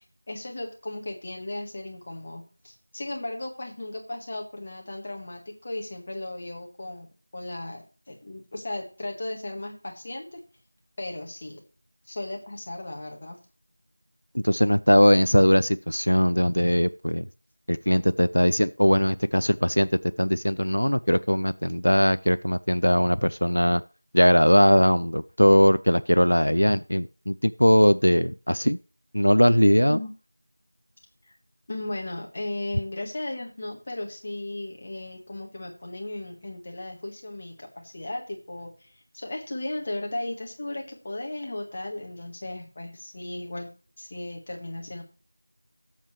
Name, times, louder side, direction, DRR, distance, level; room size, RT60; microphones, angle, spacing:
voice 1, 0.3-10.4 11.0-11.6 12.1-13.4 29.9-30.1 31.3-31.4 31.7-43.7 44.0-45.0, left 1 dB, 25° left, 2 dB, 1.6 m, -36 dB
voice 2, 14.3-17.3 17.7-19.9 20.2-23.8 24.1-28.8 29.1-30.0, equal, 80° left, 15 dB, 0.5 m, -20 dB
17.0 x 7.3 x 3.2 m, 0.35 s
figure-of-eight pair, 175°, 0 cm